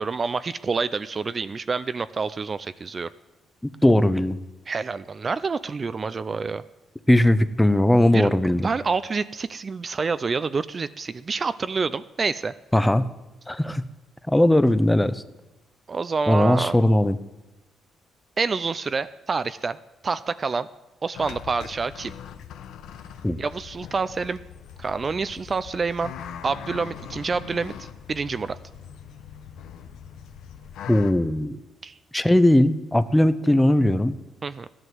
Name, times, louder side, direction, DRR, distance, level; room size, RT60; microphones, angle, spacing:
voice 1, 0.0-3.1 4.7-6.6 8.1-8.3 8.6-12.5 15.9-16.8 18.4-19.8 20.0-20.7 21.0-22.1 23.4-24.4 24.8-26.1 26.4-28.6 31.8-31.9 34.4-34.7, right 4 dB, 35° right, 14 dB, 0.5 m, -27 dB
voice 2, 3.8-4.4 7.1-8.7 12.7-13.1 13.5-13.8 14.3-15.2 16.3-17.2 23.2-23.4 30.9-31.6 32.1-34.2, left 1 dB, 10° left, 14 dB, 0.8 m, -19 dB
sound 1, 21.1-31.1, left 8 dB, 80° left, 1.0 m, -41 dB
14.0 x 11.0 x 7.8 m, 1.1 s
cardioid pair, 90°, 0 cm